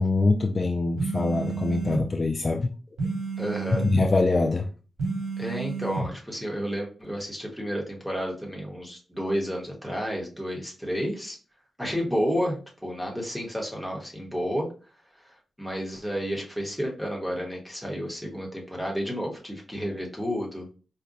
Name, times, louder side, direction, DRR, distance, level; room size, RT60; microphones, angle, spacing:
voice 1, 0.0-2.7 3.8-4.7, left 3 dB, 35° left, 0.4 m, -24 dB
sound 1, 1.0-2.1 3.0-4.1 5.0-6.1, right 4 dB, 85° right, 1.1 m, -30 dB
voice 2, 3.4-3.9 5.4-11.4 11.8-14.7 15.2-20.7, equal, ahead, 1.1 m, -31 dB
4.8 x 2.2 x 2.6 m
wide cardioid pair, 105°, 0 cm